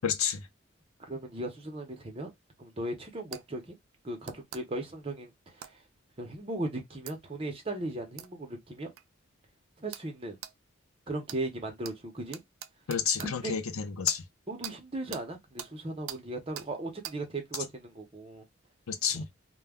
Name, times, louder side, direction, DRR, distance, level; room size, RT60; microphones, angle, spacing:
voice 1, 0.0-0.4 12.9-14.2 18.9-19.3, left 7 dB, 85° left, 0.6 m, -30 dB
voice 2, 1.0-2.3 2.6-3.8 4.0-5.8 6.2-8.9 9.8-10.4 11.1-12.4 13.2-13.5 14.5-18.4 19.1-19.2, right 2 dB, 25° right, 0.7 m, -37 dB
sound 1, 3.3-3.4 4.2-4.6 5.6-5.7 7.1-7.2 8.2-8.3 9.0-9.1 9.9-10.1 10.4-10.5 11.3-11.4 11.8-11.9 12.3-13.3 14.0-14.2 14.6-14.8 15.1-15.2 15.6-15.7 16.1-16.2 16.6-16.7 17.0-17.2 17.5-17.7, right 11 dB, 80° right, 0.4 m, -42 dB
2.2 x 2.1 x 3.4 m
head